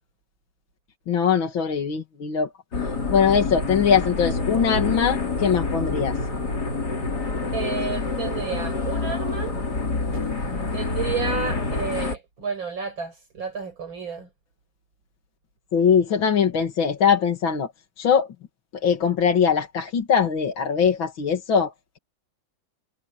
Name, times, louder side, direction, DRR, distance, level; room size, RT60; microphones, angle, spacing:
voice 1, 1.1-2.5 3.1-6.2 15.7-17.7 18.0-18.3 18.8-21.7, left 7 dB, 75° left, 2.8 m, -21 dB
sound 1, 2.7-12.2, left 3 dB, 50° left, 4.0 m, -27 dB
voice 2, 7.5-9.5 10.1-10.3 10.7-14.3, right 5 dB, 70° right, 6.5 m, -31 dB
omnidirectional pair, 2.2 m